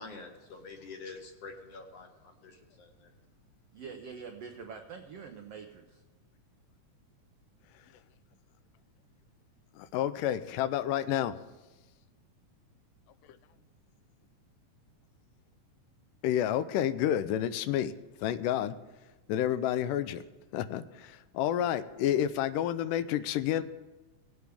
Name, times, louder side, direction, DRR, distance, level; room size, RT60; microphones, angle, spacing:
voice 1, 0.0-3.1, left 4 dB, 60° left, 4 dB, 1.9 m, -47 dB
voice 2, 3.7-6.0, right 6 dB, 85° right, 3 dB, 1.3 m, -45 dB
voice 3, 9.8-11.4 16.2-17.9 18.2-18.8 19.3-20.2 20.5-23.6, left 11 dB, 85° left, 12 dB, 2.2 m, -29 dB
19.0 x 8.1 x 3.5 m, 1.1 s
omnidirectional pair, 3.8 m